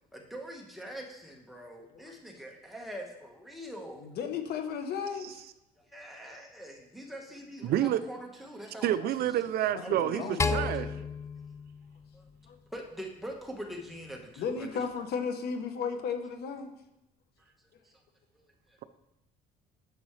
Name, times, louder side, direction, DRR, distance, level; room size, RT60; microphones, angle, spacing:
voice 1, 0.1-4.0 5.8-9.2 9.8-11.1 12.1-12.3 12.7-14.8 17.4-17.5 17.8-18.0 18.3-18.8, equal, ahead, 0 dB, 1.4 m, -44 dB
voice 2, 4.0-5.4 9.0-9.1 9.7-10.8 12.5-12.6 14.4-16.7, left 6 dB, 70° left, 7 dB, 1.0 m, -35 dB
voice 3, 7.6-8.0 8.8-10.9, right 12 dB, 65° right, 14 dB, 0.4 m, -28 dB
sound 1, 10.4-12.8, left 4 dB, 15° left, 0.3 m, -33 dB
10.0 x 6.2 x 3.2 m, 0.88 s
cardioid pair, 110°, 17 cm